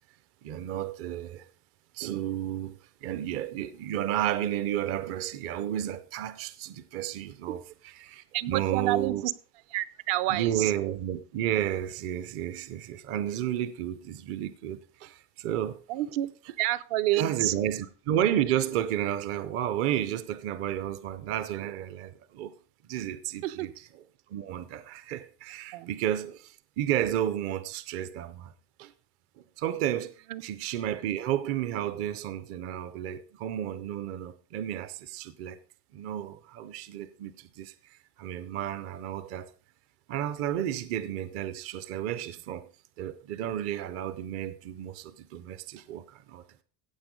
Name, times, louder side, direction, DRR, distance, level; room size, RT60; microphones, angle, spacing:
voice 1, 0.4-1.5 1.9-9.3 10.3-15.8 17.1-22.5 22.9-23.9 24.3-28.5 28.8-28.9 29.6-35.6 35.9-39.5 40.1-42.7 43.0-46.4, right 11 dB, 30° right, 0.5 m, -32 dB
voice 2, 8.3-9.3 9.7-10.7 15.9-16.3 16.6-17.5 23.4-23.7 25.7-25.9 30.3-30.4, right 15 dB, 60° right, 0.9 m, -28 dB
15.5 x 8.2 x 5.2 m
cardioid pair, 180°, 47 cm